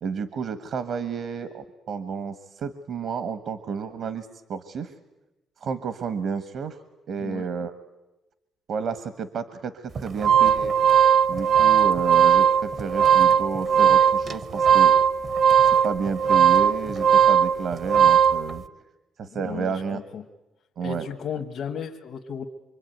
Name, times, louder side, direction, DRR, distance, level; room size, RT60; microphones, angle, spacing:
voice 1, 0.0-4.9 5.6-6.8 7.1-7.7 8.7-10.7 11.3-14.9 15.6-18.6 19.2-20.0 20.8-21.1, right 6 dB, 65° right, 13 dB, 1.3 m, -31 dB
sound 1, 10.0-18.4, right 8 dB, 50° right, 0.9 m, -18 dB
voice 2, 19.2-20.2 20.8-22.4, left 7 dB, 70° left, 2 dB, 1.6 m, -35 dB
25.5 x 24.0 x 9.3 m, 1.0 s
cardioid pair, 90°, 0 cm